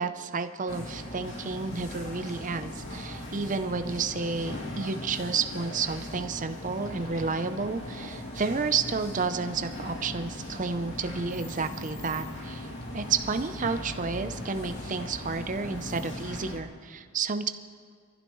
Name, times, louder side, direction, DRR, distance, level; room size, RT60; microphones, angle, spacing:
voice 1, 0.0-12.7 12.9-17.5, right 4 dB, 35° right, 9 dB, 0.6 m, -31 dB
sound 1, 0.7-16.6, left 1 dB, 55° left, 2.6 m, -39 dB
24.0 x 15.0 x 3.1 m, 2.1 s
head